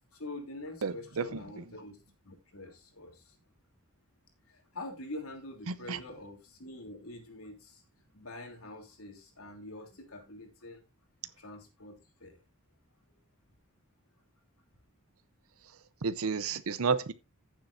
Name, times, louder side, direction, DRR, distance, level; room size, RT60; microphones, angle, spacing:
voice 1, 0.1-3.4 4.5-7.8 8.1-10.8 11.4-12.4, left 2 dB, 90° left, 3.1 m, -45 dB
voice 2, 0.8-1.2 5.7-6.0 16.0-17.1, right 5 dB, 80° right, 0.7 m, -31 dB
15.0 x 7.5 x 2.6 m
head